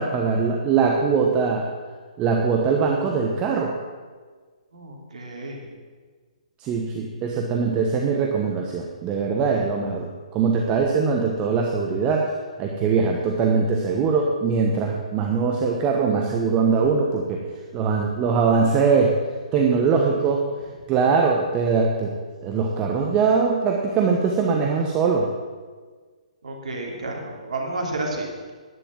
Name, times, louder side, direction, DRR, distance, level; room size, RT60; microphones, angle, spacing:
voice 1, 0.0-1.7 2.2-3.7 6.6-10.1 10.3-12.3 12.6-17.4 17.7-19.1 19.5-20.4 20.9-22.1 22.4-25.3, right 5 dB, 25° right, 0 dB, 1.2 m, -21 dB
voice 2, 4.7-5.6 19.5-20.1 26.4-28.5, right 2 dB, 65° right, 0 dB, 3.0 m, -32 dB
11.0 x 9.8 x 7.5 m, 1.5 s
figure-of-eight pair, 130°, 4 cm